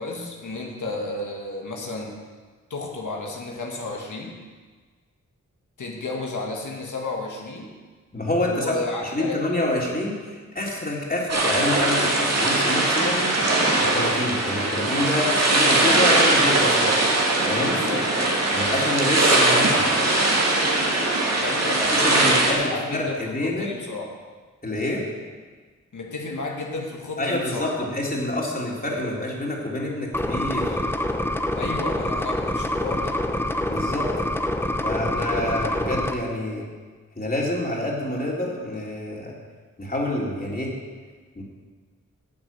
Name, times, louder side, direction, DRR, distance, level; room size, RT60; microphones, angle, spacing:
voice 1, 0.0-2.2 2.7-4.3 5.8-7.7 8.5-9.4 17.6-18.1 21.3-24.1 25.9-27.9 31.6-33.2, left 3 dB, 70° left, -1 dB, 1.9 m, -32 dB
voice 2, 8.1-13.3 13.9-16.9 17.5-17.8 18.5-19.8 21.9-23.7 24.6-25.1 27.2-30.8 33.7-34.1 34.8-36.6 37.2-39.3 39.8-40.7 41.4-41.5, left 1 dB, 30° left, -3 dB, 3.4 m, -27 dB
sound 1, 11.3-22.5, right 2 dB, 55° right, 2.3 m, -21 dB
sound 2, 30.1-36.1, left 1 dB, 5° left, 1.0 m, -26 dB
9.8 x 7.9 x 7.4 m, 1.5 s
cardioid pair, 50°, 32 cm